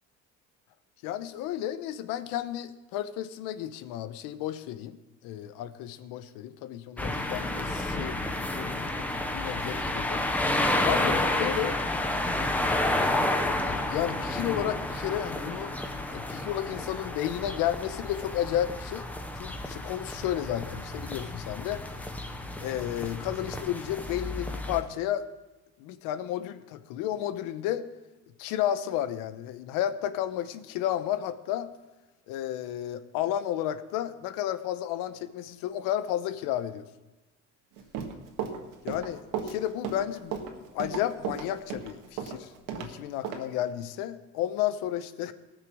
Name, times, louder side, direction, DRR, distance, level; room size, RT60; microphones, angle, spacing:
voice 1, 1.0-5.0 5.2-8.2 8.6-9.1 9.3-10.2 10.8-11.8 13.9-15.8 16.1-19.1 19.4-21.8 22.6-25.3 25.8-27.9 28.4-31.7 32.3-36.9 38.8-40.4 40.7-42.5 42.8-45.3, left 11 dB, 85° left, 12 dB, 0.9 m, -32 dB
sound 1, 7.0-24.8, left 1 dB, 5° left, 0.7 m, -31 dB
Run, 37.8-42.9 43.2-43.4, right 7 dB, 75° right, 1.7 m, -34 dB
18.5 x 6.7 x 6.1 m, 1.1 s
cardioid pair, 180°, 32 cm